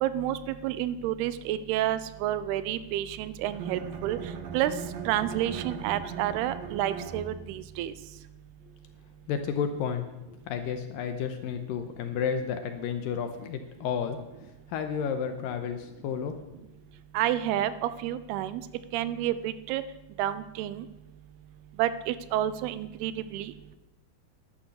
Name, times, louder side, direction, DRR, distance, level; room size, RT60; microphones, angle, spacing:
voice 1, 0.0-4.2 4.5-4.7 5.1-7.9 17.1-17.7 18.0-18.6 18.9-19.8 20.2-20.9 21.8-23.5, right 12 dB, 85° right, 14 dB, 2.6 m, -29 dB
Bowed string instrument, 3.4-7.7, right 6 dB, 70° right, 1.6 m, -39 dB
voice 2, 9.3-14.2 14.7-16.3, left 7 dB, 75° left, 7 dB, 2.2 m, -31 dB
11.5 x 11.5 x 6.5 m, 0.99 s
omnidirectional pair, 4.6 m